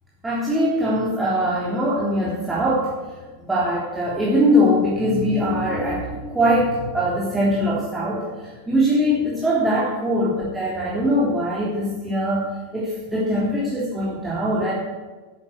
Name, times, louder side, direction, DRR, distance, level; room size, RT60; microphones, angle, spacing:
voice 1, 0.2-2.9 3.4-14.7, equal, 10° right, -7 dB, 3.5 m, -22 dB
11.0 x 9.7 x 8.0 m, 1.3 s
figure-of-eight pair, 90°, 0 cm